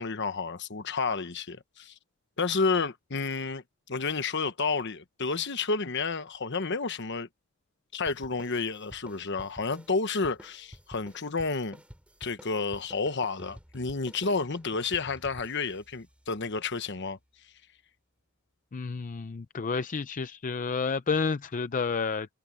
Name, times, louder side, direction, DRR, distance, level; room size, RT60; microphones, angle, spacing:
voice 1, 0.0-1.9 2.4-7.3 7.9-11.8 12.2-17.2, left 4 dB, 55° left, 1.1 m, -30 dB
sound 1, 8.1-16.9, equal, 5° right, 3.3 m, -52 dB
voice 2, 18.7-22.3, left 5 dB, 40° left, 0.5 m, -30 dB
head